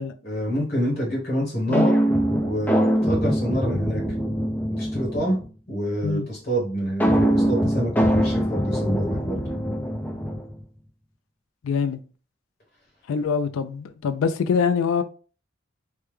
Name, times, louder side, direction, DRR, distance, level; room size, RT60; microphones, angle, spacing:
voice 1, 0.2-1.9 2.4-4.0 4.7-5.4 5.7-9.5, equal, 50° left, 1.1 m, -27 dB
sound 1, 1.7-5.5 7.0-10.6, equal, 10° left, 0.4 m, -23 dB
voice 2, 11.6-12.0 13.1-15.0, left 5 dB, 90° left, 0.3 m, -24 dB
3.4 x 2.1 x 3.1 m
head